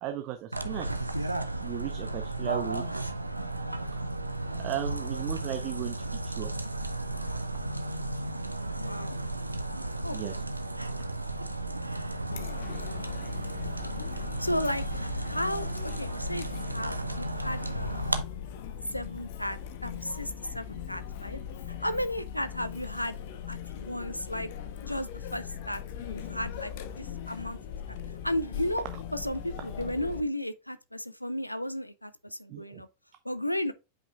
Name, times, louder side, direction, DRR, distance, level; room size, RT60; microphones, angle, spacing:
voice 1, 0.0-1.4 1.6-3.0 4.6-5.9 6.2-6.5 10.1-10.4 32.5-32.8, right 12 dB, 40° right, 0.7 m, -36 dB
sound 1, 0.5-18.2, right 2 dB, 85° right, 0.6 m, -34 dB
voice 2, 8.7-9.1 10.0-10.4 14.4-18.1 18.9-21.4 21.7-23.2 23.5-24.5 24.8-28.0 28.2-28.8 29.1-32.9 33.2-33.7, equal, 90° left, 0.5 m, -34 dB
Chatter, 12.3-30.2, left 9 dB, 50° left, 0.9 m, -40 dB
8.5 x 5.2 x 2.4 m
figure-of-eight pair, 90°, 0 cm